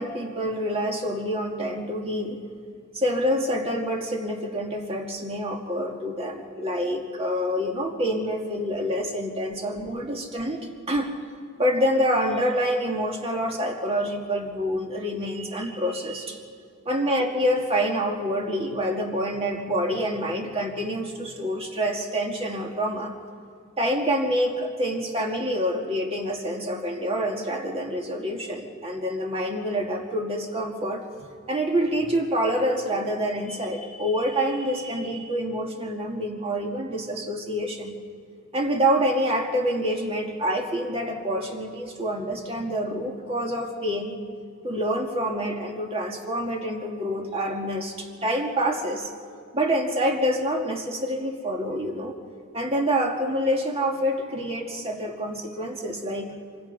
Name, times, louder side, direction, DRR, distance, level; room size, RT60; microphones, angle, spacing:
voice 1, 0.0-2.4 2.9-11.1 11.6-16.4 16.9-23.1 23.8-31.0 31.5-37.9 38.5-44.2 44.6-49.1 49.5-52.1 52.5-56.3, equal, 30° right, 1 dB, 2.1 m, -27 dB
25.5 x 25.5 x 5.6 m, 2.4 s
head